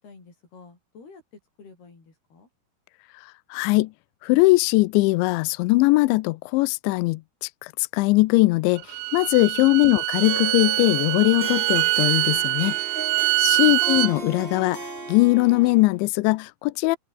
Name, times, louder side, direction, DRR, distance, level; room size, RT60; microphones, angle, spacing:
voice 1, 0.0-2.5, left 4 dB, 50° left, 9.7 m, -50 dB
voice 2, 3.5-3.9 4.2-8.8 9.1-12.8 13.4-17.0, left 22 dB, 85° left, 2.7 m, -20 dB
Bowed string instrument, 8.8-14.1, right 21 dB, 80° right, 2.7 m, -24 dB
Harp, 10.1-16.0, right 3 dB, 25° right, 1.3 m, -36 dB
open air
omnidirectional pair, 5.8 m